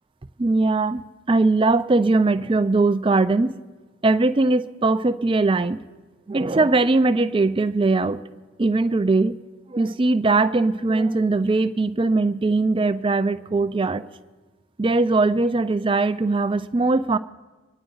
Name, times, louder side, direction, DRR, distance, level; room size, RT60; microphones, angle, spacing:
voice 1, 0.4-3.6 4.0-5.8 6.3-8.2 8.6-9.4 9.7-14.0 14.8-17.2, right 3 dB, 25° right, 11 dB, 0.4 m, -20 dB
25.0 x 10.0 x 3.9 m, 1.3 s
head